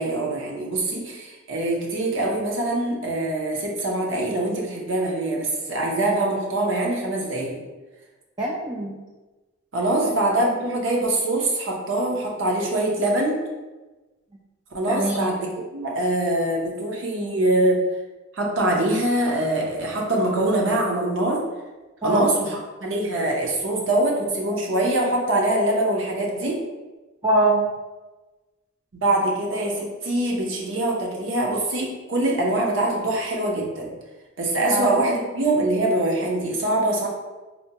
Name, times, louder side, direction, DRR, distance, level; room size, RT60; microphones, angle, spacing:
voice 1, 0.0-7.6 9.7-13.4 14.7-17.8 18.3-21.4 22.0-26.6 28.9-33.9 34.4-37.1, right 1 dB, 70° right, -2 dB, 0.7 m, -23 dB
voice 2, 8.4-9.0 10.0-10.1 14.9-15.3 22.0-22.3 27.2-27.7 34.7-34.9, right 1 dB, 20° right, -3 dB, 0.3 m, -22 dB
4.2 x 2.2 x 2.8 m, 1.2 s
head